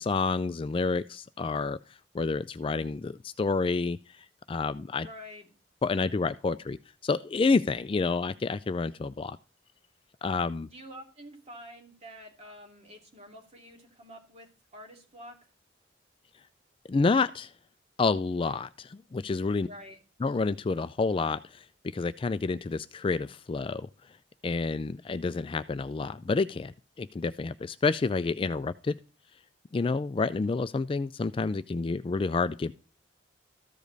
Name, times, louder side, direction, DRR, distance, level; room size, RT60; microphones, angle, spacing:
voice 1, 0.0-1.8 2.1-4.0 4.5-5.1 5.8-6.8 7.0-9.4 10.2-10.7 16.9-17.5 18.0-19.7 20.2-21.6 21.9-23.9 24.4-28.9 29.7-32.7, left 4 dB, 30° left, 13 dB, 0.3 m, -29 dB
voice 2, 5.0-5.5 10.7-15.4 19.6-20.0, equal, 35° right, 1 dB, 2.6 m, -48 dB
14.0 x 5.1 x 3.9 m, 0.36 s
head